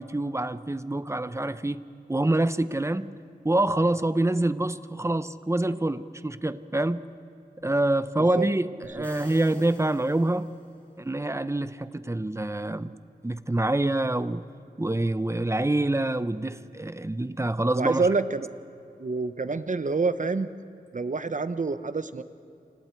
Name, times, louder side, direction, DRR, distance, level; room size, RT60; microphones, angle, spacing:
voice 1, 0.0-1.8 2.1-3.2 3.4-7.0 7.6-10.5 11.0-12.9 13.2-14.5 14.8-18.1, right 1 dB, 15° right, 14 dB, 0.7 m, -26 dB
sound 1, 8.8-10.9, equal, 10° left, 6.7 m, -50 dB
voice 2, 17.8-18.5 19.0-20.5 20.9-22.2, right 4 dB, 50° right, 12 dB, 0.9 m, -27 dB
29.5 x 26.0 x 4.6 m, 2.8 s
wide cardioid pair, 95°, 17 cm